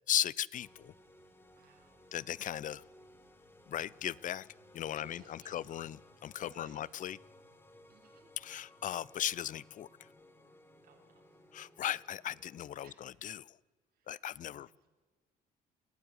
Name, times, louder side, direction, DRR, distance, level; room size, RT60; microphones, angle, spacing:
voice 1, 0.1-0.9 2.1-2.8 3.7-4.5 4.7-7.2 8.4-9.9 11.5-13.6 14.1-14.9, left 11 dB, 50° left, 23 dB, 0.7 m, -37 dB
sound 1, 0.5-12.9, left 1 dB, 15° left, 4.2 m, -60 dB
voice 2, 1.5-2.0 4.9-5.6 6.4-6.8 7.9-8.3 10.8-11.2 12.8-13.0 14.0-14.1 14.5-14.7, right 6 dB, 60° right, 2 dB, 7.4 m, -62 dB
28.5 x 16.5 x 9.8 m, 1.4 s
cardioid pair, 110°, 17 cm